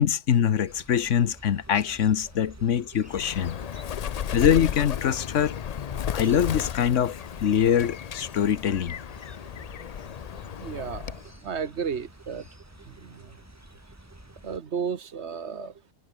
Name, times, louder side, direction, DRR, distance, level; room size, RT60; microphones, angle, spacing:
voice 1, 0.0-3.6 4.3-5.6 6.1-8.9, left 9 dB, 85° left, 1.3 m, -23 dB
sound 1, 0.7-14.6, right 1 dB, 10° right, 2.6 m, -50 dB
Bird, 3.1-11.3, left 8 dB, 55° left, 0.4 m, -34 dB
voice 2, 10.6-11.1 11.4-12.4 13.0-13.2 14.4-15.7, right 6 dB, 65° right, 1.5 m, -32 dB
omnidirectional pair, 1.3 m